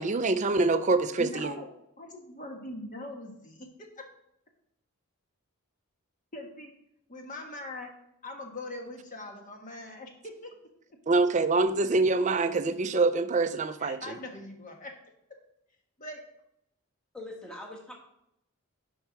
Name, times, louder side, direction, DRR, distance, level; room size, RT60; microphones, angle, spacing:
voice 1, 0.0-1.6 11.1-14.2, right 3 dB, 35° right, 0.5 m, -25 dB
voice 2, 1.2-1.7 2.0-4.1 6.3-6.8 7.1-7.9 8.2-10.6 13.8-15.0 15.3-15.4 16.0-16.2, left 1 dB, 35° left, 1.4 m, -41 dB
voice 3, 17.1-18.0, left 1 dB, 5° left, 1.3 m, -42 dB
6.9 x 5.6 x 6.1 m
head